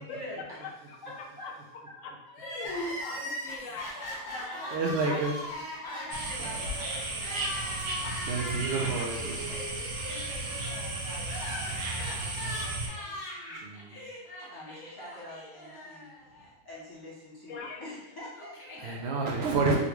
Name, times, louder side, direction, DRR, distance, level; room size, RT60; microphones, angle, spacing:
voice 1, 0.0-0.6 1.0-1.5 1.9-2.0 2.2-2.6 3.5-3.6 4.3-4.8 5.0-5.2 5.8-8.2 8.5-8.7 9.2-13.7 14.5-16.1 16.4-19.2, left 1 dB, 20° left, -7 dB, 0.6 m, -46 dB
voice 2, 0.6-1.5 2.0-2.1 2.4-4.2 17.5-17.8, left 3 dB, 65° left, 2 dB, 0.9 m, -40 dB
Crying sobbing, 2.3-16.5 16.8-16.9 17.8-19.0, left 1 dB, 50° left, 1.2 m, -40 dB
voice 3, 4.7-5.4 6.4-6.8 7.6-7.7 8.2-9.6 13.6-14.0 18.8-19.8, right 4 dB, 70° right, -1 dB, 0.6 m, -30 dB
sound 1, 6.1-12.9, right 2 dB, 85° right, 1.2 m, -35 dB
3.7 x 2.3 x 2.9 m, 0.92 s
omnidirectional pair, 1.5 m